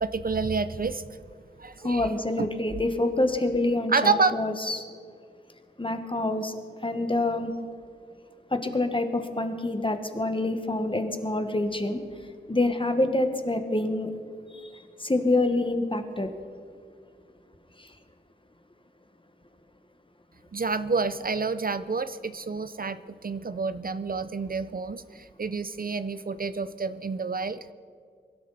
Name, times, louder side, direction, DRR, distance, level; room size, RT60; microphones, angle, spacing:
voice 1, 0.0-1.2 1.6-2.1 2.4-2.5 3.9-4.3 20.5-27.6, right 4 dB, 50° right, 13 dB, 0.5 m, -28 dB
voice 2, 1.8-4.8 5.8-7.5 8.5-12.0 12.5-14.1 14.5-16.3 17.8-17.9, left 2 dB, 30° left, 7 dB, 1.4 m, -27 dB
23.0 x 12.0 x 4.2 m, 2.2 s
wide cardioid pair, 70°, 19 cm